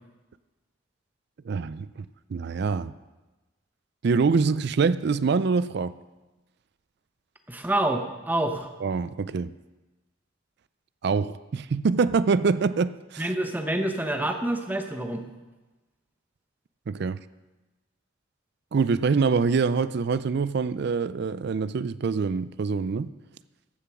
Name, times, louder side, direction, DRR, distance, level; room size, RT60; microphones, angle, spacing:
voice 1, 1.5-2.9 4.0-5.9 8.8-9.5 11.0-13.3 16.9-17.2 18.7-23.1, right 5 dB, 55° right, 15 dB, 0.4 m, -25 dB
voice 2, 7.5-8.7 13.2-15.2, right 1 dB, 10° right, 5 dB, 0.9 m, -27 dB
14.5 x 6.9 x 6.0 m, 1.1 s
head